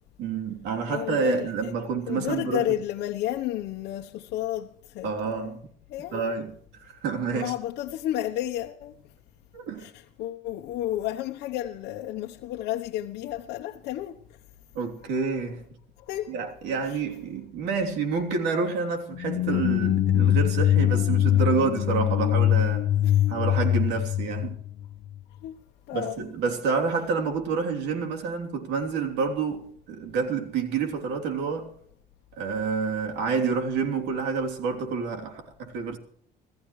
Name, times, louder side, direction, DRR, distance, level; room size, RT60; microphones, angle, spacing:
voice 1, 0.2-2.6 5.0-5.6 6.1-7.5 9.5-9.9 14.7-15.7 16.3-22.9 23.3-24.6 25.9-31.7 32.3-36.0, right 5 dB, 90° right, 3.3 m, -28 dB
voice 2, 0.9-1.7 2.1-5.6 5.9-6.4 7.3-8.9 9.8-14.2 16.1-16.3 16.8-17.0 23.0-23.2 25.4-25.6 25.9-26.3, left 13 dB, 85° left, 1.0 m, -32 dB
sound 1, 19.1-25.2, left 11 dB, 65° left, 0.8 m, -23 dB
26.5 x 14.0 x 3.2 m
cardioid pair, 110°, 17 cm